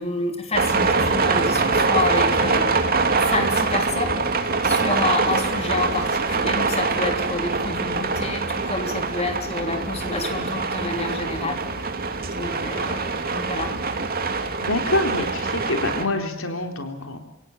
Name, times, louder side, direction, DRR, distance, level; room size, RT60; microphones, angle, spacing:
voice 1, 0.0-11.6 12.4-13.8, left 2 dB, 30° left, 4 dB, 3.6 m, -29 dB
sound 1, 0.5-16.0, right 4 dB, 45° right, 2.7 m, -24 dB
voice 2, 14.6-17.2, left 2 dB, 85° left, 5 dB, 3.7 m, -26 dB
29.5 x 17.5 x 7.4 m, 0.86 s
head